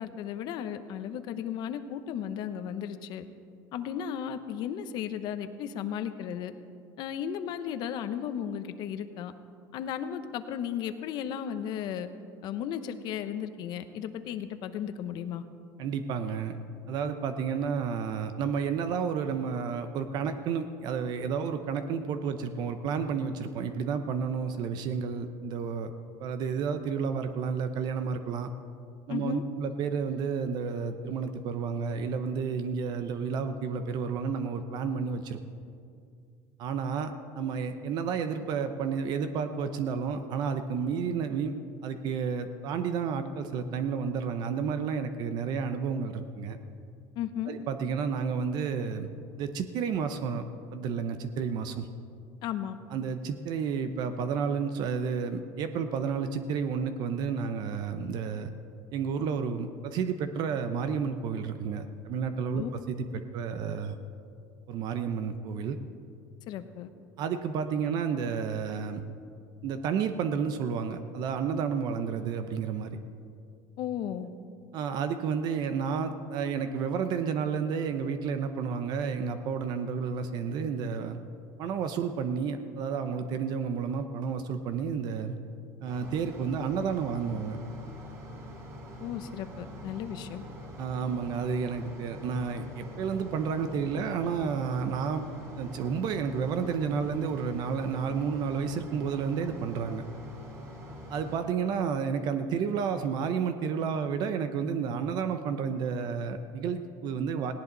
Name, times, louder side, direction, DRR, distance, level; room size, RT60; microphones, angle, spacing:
voice 1, 0.0-3.2 3.7-6.5 7.0-9.3 9.7-12.1 12.4-15.4 29.1-29.4 47.2-47.5 52.4-52.8 62.5-62.7 66.5-66.9 73.8-74.3 89.0-90.4, left 9 dB, 60° left, 10 dB, 1.0 m, -35 dB
voice 2, 15.8-16.6 16.9-25.9 26.2-28.5 29.1-35.4 36.6-41.6 41.8-46.6 47.5-49.1 49.4-50.4 50.7-51.9 52.9-58.5 58.9-64.0 64.7-65.8 67.2-69.0 69.6-73.0 74.7-81.2 81.6-85.4 85.8-87.6 90.8-95.2 95.6-100.0 101.1-107.5, right 6 dB, 55° right, 9 dB, 0.9 m, -31 dB
sound 1, 85.8-101.4, equal, 35° right, 4.1 m, -44 dB
18.5 x 17.5 x 4.1 m, 2.4 s
cardioid pair, 145°, 9 cm